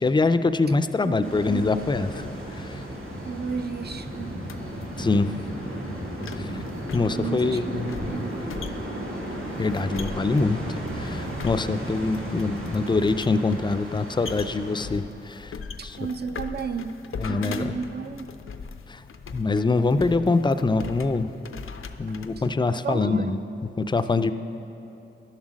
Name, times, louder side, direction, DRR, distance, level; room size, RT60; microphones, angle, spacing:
voice 1, 0.0-2.3 2.5-2.8 5.0-5.3 6.4-6.5 6.9-7.9 9.6-10.6 10.9-15.6 15.8-16.0 17.2-17.8 18.9-19.0 19.3-21.3 22.0-23.4 23.8-24.3, left 3 dB, 20° left, 11 dB, 0.4 m, -24 dB
voice 2, 1.0-1.7 3.2-4.3 7.1-8.4 15.8-16.9 17.3-18.3 22.8-23.3, right 5 dB, 50° right, 9 dB, 0.5 m, -33 dB
sound 1, 1.2-14.9, equal, 90° right, 1.9 m, -34 dB
sound 2, 3.5-22.5, left 5 dB, 80° left, 0.5 m, -41 dB
11.0 x 7.3 x 6.3 m, 2.8 s
wide cardioid pair, 90°, 21 cm